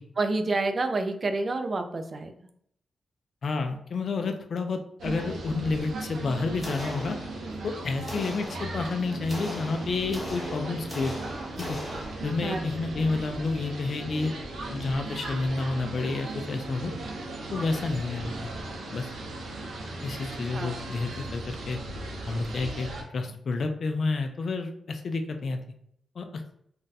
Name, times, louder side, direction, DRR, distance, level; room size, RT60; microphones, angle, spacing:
voice 1, 0.2-2.3 12.4-12.6 20.5-20.8, right 3 dB, 35° right, 6 dB, 0.4 m, -28 dB
voice 2, 3.4-7.2 7.6-11.1 11.6-11.8 12.2-14.4 14.7-16.9 17.5-18.5 18.9-19.1 20.0-21.8 22.3-22.9 23.1-25.6 26.2-26.5, left 3 dB, 55° left, 6 dB, 0.4 m, -30 dB
sound 1, 5.0-23.0, right 2 dB, 80° right, 0.7 m, -37 dB
sound 2, 6.6-7.7 8.1-12.6, left 1 dB, 15° left, 1.0 m, -40 dB
2.5 x 2.2 x 4.0 m, 0.68 s
wide cardioid pair, 120°, 0 cm